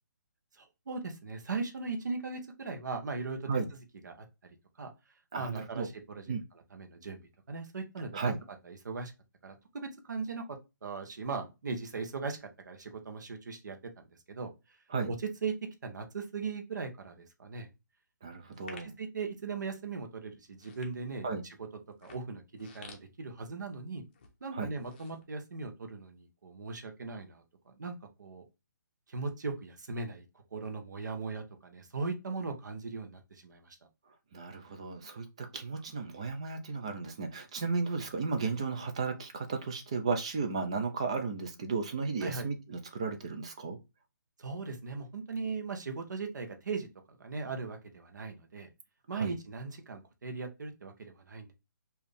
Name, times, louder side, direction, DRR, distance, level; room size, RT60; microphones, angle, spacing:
voice 1, 0.5-3.5 4.0-4.9 5.3-6.2 6.7-7.2 7.5-8.3 8.6-9.1 9.4-10.4 10.8-14.5 15.1-15.2 15.4-15.5 15.8-17.7 18.8-21.6 22.0-24.0 24.4-27.9 28.2-28.4 29.1-30.2 30.5-33.8 42.2-42.5 44.4-48.7 49.1-51.5, right 4 dB, 60° right, 1.1 m, -39 dB
voice 2, 5.3-5.9 6.3-6.4 8.1-8.4 14.9-15.1 18.2-18.9 21.2-21.4 24.5-24.7 34.3-43.8 49.1-49.4, right 4 dB, 15° right, 0.4 m, -34 dB
sound 1, 18.5-19.0 19.7-19.9 20.4-21.4 21.9-23.8 24.1-24.3 24.7-25.9 26.3-26.4, left 4 dB, 25° left, 0.7 m, -53 dB
4.5 x 2.6 x 3.4 m
hypercardioid pair, 175°, 11 cm